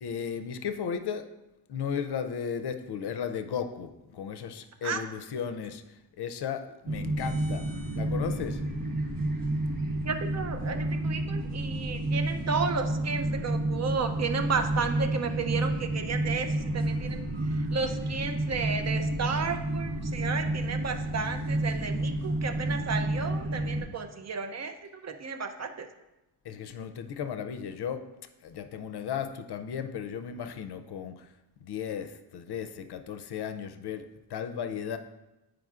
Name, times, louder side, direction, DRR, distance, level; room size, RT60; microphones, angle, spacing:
voice 1, 0.0-1.3 1.7-7.7 7.9-8.6 26.4-28.1 28.4-31.3 31.6-35.0, left 7 dB, 75° left, 9 dB, 0.5 m, -35 dB
sound 1, 6.9-23.8, right 1 dB, 55° right, 1.1 m, -30 dB
voice 2, 10.0-16.5 16.7-17.3 17.7-24.7 25.0-25.9, right 5 dB, 40° right, 7 dB, 0.5 m, -33 dB
9.1 x 4.8 x 2.4 m, 0.96 s
wide cardioid pair, 145°, 41 cm